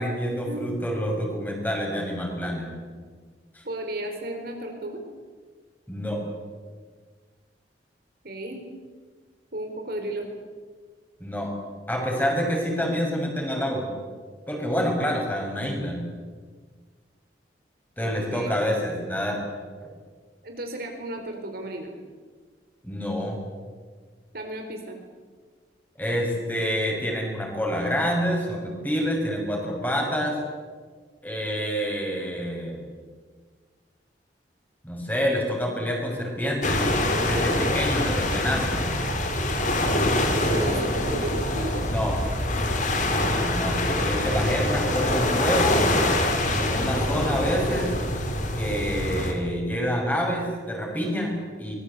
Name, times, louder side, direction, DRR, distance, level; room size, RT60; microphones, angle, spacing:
voice 1, 0.0-2.7 3.5-3.6 5.9-6.2 11.2-11.5 11.9-13.9 14.5-16.0 18.0-19.4 22.8-23.4 26.0-30.4 31.2-32.9 34.8-36.8 37.2-38.9 41.8-42.2 43.5-45.9 46.6-47.9 48.5-51.8, equal, 10° left, 0 dB, 6.4 m, -27 dB
voice 2, 3.6-5.0 8.2-8.6 9.5-10.3 18.0-18.5 20.4-21.9 24.3-25.0 40.5-41.8, right 1 dB, 55° right, 3 dB, 4.2 m, -33 dB
sound 1, 36.6-49.3, left 1 dB, 45° left, 3.7 m, -25 dB
24.5 x 21.5 x 8.4 m, 1.6 s
head